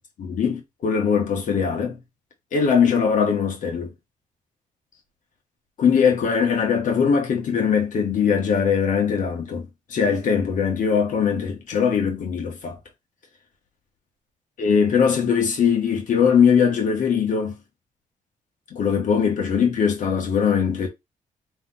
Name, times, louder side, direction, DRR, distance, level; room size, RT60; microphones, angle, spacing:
voice 1, 0.2-2.0 2.5-3.9 5.8-12.8 14.6-17.6 18.7-20.9, left 6 dB, 65° left, 1.6 m, -21 dB
3.6 x 3.6 x 4.0 m
cardioid pair, 130°, 14 cm